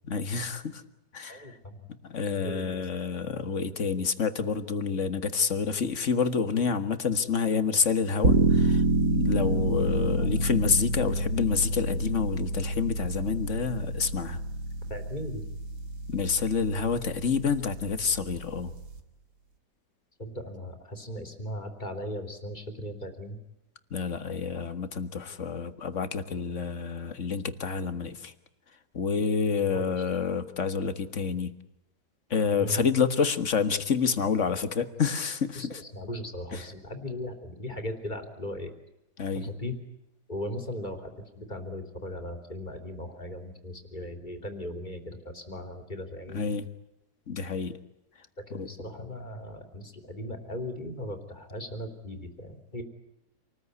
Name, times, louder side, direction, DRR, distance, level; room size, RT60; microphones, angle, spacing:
voice 1, 0.1-0.8 1.1-1.5 2.1-14.4 16.1-18.7 23.9-28.3 28.9-31.5 32.3-35.8 36.5-36.7 39.2-39.5 46.3-46.7 47.3-47.8 48.5-48.7, left 5 dB, 50° left, 11 dB, 1.8 m, -28 dB
voice 2, 1.3-1.9 2.4-2.8 10.2-10.3 14.9-15.4 20.2-23.4 29.7-30.1 32.6-32.8 35.6-38.7 39.4-39.8 40.3-46.5 48.5-52.8, left 1 dB, 25° left, 6 dB, 3.5 m, -38 dB
sound 1, 8.2-19.0, right 2 dB, 80° right, 2.5 m, -28 dB
27.5 x 20.0 x 9.6 m, 0.92 s
omnidirectional pair, 1.7 m